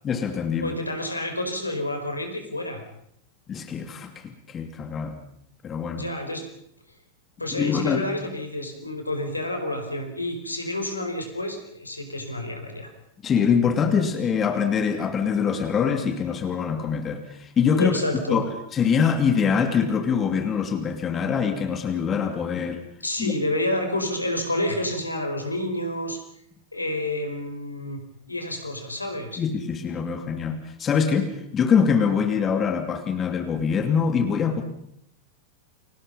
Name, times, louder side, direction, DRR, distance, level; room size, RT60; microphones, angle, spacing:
voice 1, 0.0-0.8 3.5-5.2 5.6-6.1 7.6-8.0 13.2-17.9 18.3-18.5 18.7-22.8 23.2-23.3 29.4-34.6, left 6 dB, 25° left, 7 dB, 2.7 m, -24 dB
voice 2, 0.6-2.8 5.9-6.5 7.4-12.9 17.7-18.5 23.0-26.2 26.7-28.0 28.3-29.4, left 1 dB, 85° left, 5 dB, 4.8 m, -29 dB
30.0 x 24.0 x 5.5 m, 0.71 s
figure-of-eight pair, 90°, 0 cm